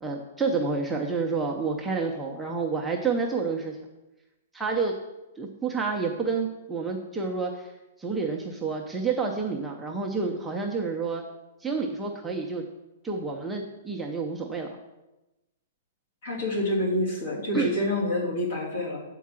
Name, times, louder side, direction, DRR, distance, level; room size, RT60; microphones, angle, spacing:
voice 1, 0.0-3.8 4.5-4.9 5.4-7.7 8.0-11.2 11.6-12.6 13.0-14.7 17.5-17.7, right 4 dB, 5° right, -1 dB, 0.5 m, -29 dB
voice 2, 16.2-19.0, left 1 dB, 50° left, -2 dB, 3.0 m, -27 dB
8.3 x 4.6 x 7.4 m, 1.0 s
hypercardioid pair, 180°, 0 cm